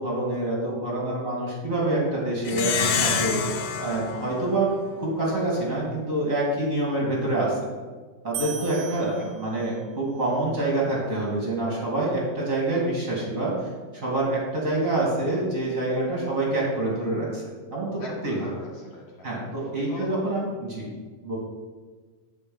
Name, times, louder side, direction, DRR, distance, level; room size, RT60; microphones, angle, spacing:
voice 1, 0.0-4.7 5.0-7.5 8.2-13.5 13.9-17.4 17.7-18.5 19.2-20.9 21.2-21.3, right 2 dB, 30° right, -4 dB, 1.6 m, -26 dB
Plucked string instrument, 2.5-5.3, left 6 dB, 80° left, 3.0 m, -28 dB
sound 1, 8.3-10.0, right 7 dB, 90° right, 3.2 m, -37 dB
voice 2, 8.6-9.3 14.7-14.8 18.0-19.3 19.9-20.1, left 3 dB, 45° left, -3 dB, 2.9 m, -42 dB
9.7 x 5.5 x 7.8 m, 1.4 s
omnidirectional pair, 5.0 m